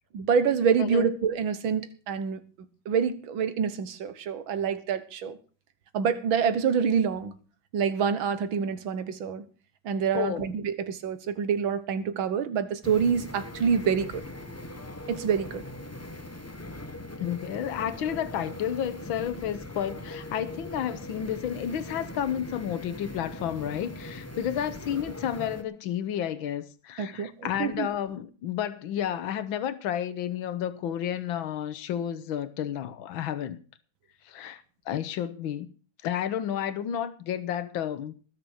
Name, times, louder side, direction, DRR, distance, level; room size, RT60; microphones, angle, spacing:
voice 1, 0.1-2.4 2.9-5.4 5.9-7.3 7.7-9.4 9.9-14.2 15.1-15.6 27.0-27.9, right 6 dB, 80° right, 2.0 m, -26 dB
voice 2, 10.1-10.5 17.2-33.6 34.3-35.7 36.0-38.1, left 10 dB, 80° left, 1.8 m, -31 dB
sound 1, 12.8-25.6, left 1 dB, 15° left, 0.6 m, -40 dB
20.0 x 6.8 x 6.4 m
omnidirectional pair, 2.2 m